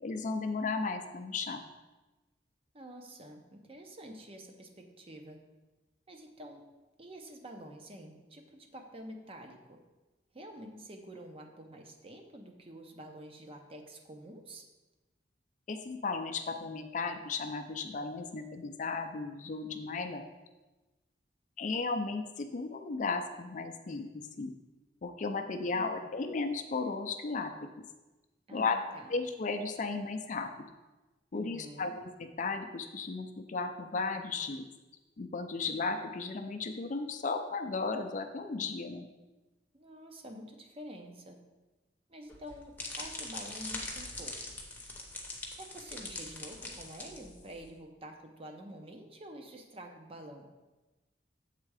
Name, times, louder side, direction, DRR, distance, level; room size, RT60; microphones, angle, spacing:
voice 1, 0.0-1.6 15.7-20.2 21.6-24.1 24.4-24.5 25.0-27.7 28.5-28.8 29.1-30.7 31.3-34.6 35.2-39.1, left 4 dB, 45° left, 7 dB, 0.4 m, -35 dB
voice 2, 2.7-5.4 6.1-6.6 7.0-9.8 10.3-14.7 25.7-26.2 28.5-29.1 31.3-31.9 39.7-41.4 42.1-44.4 45.6-50.5, right 1 dB, 35° right, 3 dB, 0.7 m, -48 dB
sound 1, 42.3-47.7, left 2 dB, 10° left, 0.8 m, -42 dB
7.5 x 3.7 x 4.8 m, 1.1 s
head